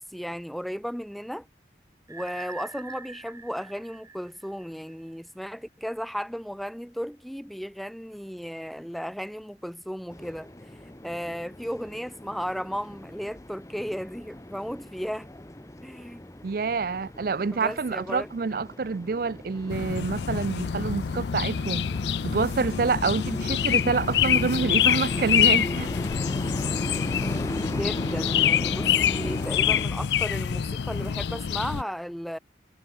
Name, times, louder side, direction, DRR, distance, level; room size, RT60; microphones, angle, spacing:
voice 1, 0.0-1.5 2.1-10.5 10.8-15.3 15.8-16.3 17.5-18.3 27.6-32.4, equal, ahead, 0.5 m, -35 dB
sound 1, 2.1-4.9, right 4 dB, 20° right, 2.0 m, -44 dB
sound 2, 10.1-29.8, left 1 dB, 15° left, 0.9 m, -37 dB
voice 2, 16.4-21.9 22.2-25.9, right 4 dB, 55° right, 0.4 m, -27 dB
sound 3, 19.7-31.8, left 8 dB, 75° left, 0.4 m, -26 dB
head